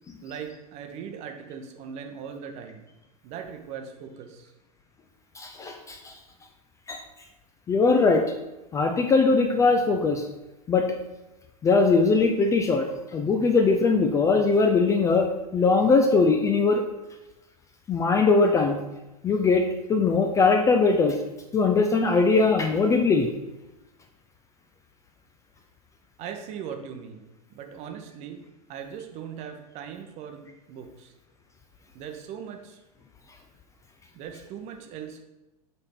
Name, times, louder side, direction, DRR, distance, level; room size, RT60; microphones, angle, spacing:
voice 1, 0.2-2.9 3.2-4.5 26.2-28.4 28.7-31.1 31.9-32.8 34.1-35.2, right 7 dB, 35° right, 5 dB, 0.8 m, -39 dB
voice 2, 5.4-6.1 6.9-7.0 7.7-8.2 8.7-10.2 10.7-10.9 11.6-12.8 13.1-15.3 15.5-16.8 17.9-18.8 19.2-21.2 21.5-23.3, left 4 dB, 15° left, 4 dB, 0.4 m, -21 dB
6.8 x 4.1 x 3.4 m, 1.0 s
figure-of-eight pair, 95°, 20 cm